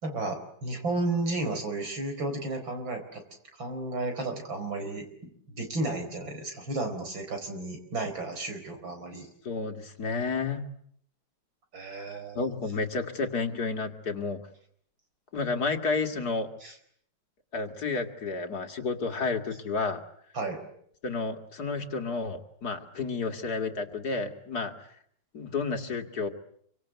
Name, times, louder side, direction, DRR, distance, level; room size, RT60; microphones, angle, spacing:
voice 1, 0.0-3.2 3.6-9.3 11.7-12.5 16.6-16.7 20.4-20.6, right 2 dB, 80° right, 6 dB, 5.2 m, -33 dB
voice 2, 9.4-10.6 12.4-14.4 15.3-16.5 17.5-20.0 21.0-24.7 25.3-26.3, left 4 dB, 55° left, 5 dB, 2.5 m, -31 dB
27.0 x 24.5 x 8.1 m, 0.67 s
omnidirectional pair, 2.1 m